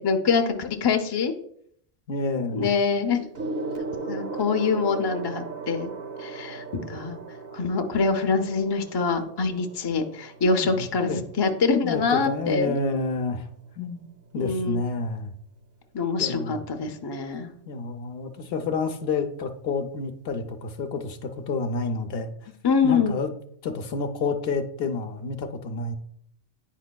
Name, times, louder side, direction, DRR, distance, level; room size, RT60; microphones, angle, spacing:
voice 1, 0.0-1.3 2.5-3.3 4.1-5.9 6.2-6.6 6.9-7.2 7.5-11.1 11.4-12.7 14.4-14.8 15.9-17.5 22.6-23.1, left 5 dB, 35° left, 5 dB, 0.4 m, -24 dB
voice 2, 2.1-2.7 10.8-11.2 11.8-13.5 13.8-15.3 16.2-16.6 17.7-22.5 22.8-23.3 23.6-25.9, left 3 dB, 65° left, 6 dB, 0.7 m, -29 dB
Gong, 3.3-13.1 14.1-14.3, right 4 dB, 60° right, 1.0 m, -37 dB
9.1 x 5.0 x 2.2 m, 0.67 s
omnidirectional pair, 1.2 m